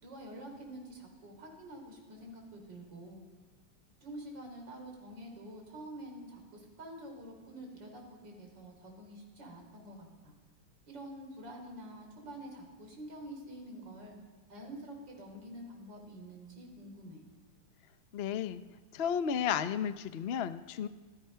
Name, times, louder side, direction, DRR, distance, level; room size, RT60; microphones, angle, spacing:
voice 1, 0.0-3.2 4.0-10.3 10.9-14.2 14.5-17.2, right 1 dB, 65° right, 1 dB, 5.0 m, -47 dB
voice 2, 18.1-18.6 18.9-20.9, left 8 dB, 65° left, 11 dB, 0.6 m, -33 dB
26.5 x 18.5 x 5.7 m, 1.3 s
omnidirectional pair, 2.1 m